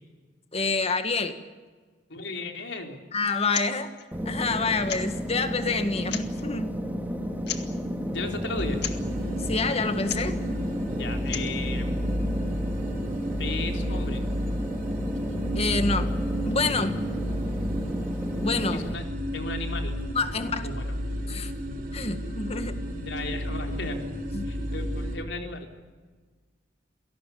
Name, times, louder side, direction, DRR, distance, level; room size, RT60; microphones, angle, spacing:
voice 1, 0.5-1.4 3.1-3.9 4.3-6.7 9.4-10.4 15.6-16.1 16.5-16.9 18.4-18.8 20.1-20.7 21.3-21.5 21.9-22.8 24.3-24.5, left 3 dB, 35° left, 8 dB, 1.9 m, -27 dB
voice 2, 2.1-3.0 8.1-8.8 10.9-12.1 13.4-14.2 16.7-16.9 18.7-19.0 19.3-20.0 20.5-20.9 22.9-24.0 24.4-25.7, left 3 dB, 85° left, 3 dB, 3.9 m, -35 dB
sound 1, 3.5-3.7 4.0-4.1 4.9-5.2 5.9-6.4 7.4-7.8 8.8-9.0 10.0-10.3 11.1-11.6, left 9 dB, 65° left, 2.0 m, -34 dB
sound 2, 4.1-18.9, equal, 10° right, 2.2 m, -32 dB
sound 3, 8.6-25.2, equal, 50° right, 3.4 m, -32 dB
28.0 x 18.0 x 8.6 m, 1.4 s
head